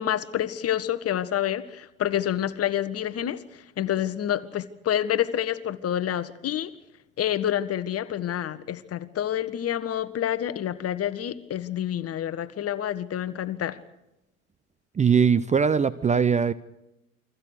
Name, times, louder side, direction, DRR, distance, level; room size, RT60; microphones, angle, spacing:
voice 1, 0.0-6.7 7.2-13.8, left 11 dB, 35° left, 1.5 m, -28 dB
voice 2, 15.0-16.5, right 6 dB, 15° right, 0.7 m, -21 dB
29.5 x 23.0 x 4.9 m
figure-of-eight pair, 70°, 41 cm